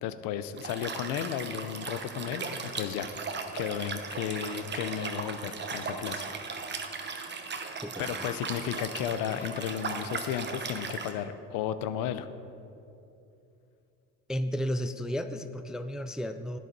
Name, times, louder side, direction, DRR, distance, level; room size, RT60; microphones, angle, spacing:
voice 1, 0.0-3.1 3.5-6.5 8.0-12.3, left 10 dB, 70° left, 12 dB, 0.7 m, -34 dB
Liquid, 0.6-11.1, right 4 dB, 30° right, 1.0 m, -37 dB
voice 2, 7.8-8.3 14.3-16.6, equal, ahead, 10 dB, 0.3 m, -33 dB
11.5 x 9.4 x 4.0 m, 2.7 s
supercardioid pair, 85°, 35 cm